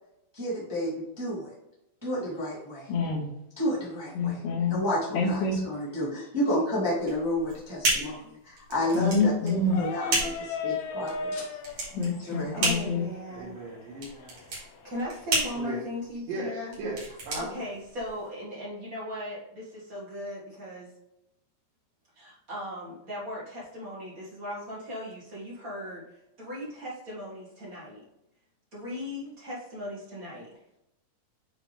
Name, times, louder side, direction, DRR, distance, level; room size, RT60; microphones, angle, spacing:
voice 1, 0.3-1.5 2.0-2.9 3.6-4.4 4.7-11.5 12.2-12.7, equal, 10° right, -8 dB, 1.2 m, -31 dB
voice 2, 2.9-3.2 4.1-4.8 5.1-5.6 8.9-9.9 11.9-13.0, left 3 dB, 70° left, -10 dB, 3.5 m, -26 dB
sound 1, 7.0-18.3, right 2 dB, 45° right, 3.1 m, -32 dB
sound 2, 9.6-15.3, left 5 dB, 85° left, 2.7 m, -38 dB
voice 3, 12.5-13.6 14.8-16.7 17.3-20.9 22.1-26.1 26.4-28.0 28.7-30.5, left 1 dB, 85° right, -7 dB, 0.7 m, -38 dB
voice 4, 13.3-14.4 15.5-15.9 16.3-17.5, right 2 dB, 70° right, -7 dB, 2.8 m, -37 dB
8.7 x 4.0 x 3.2 m, 0.87 s
omnidirectional pair, 4.4 m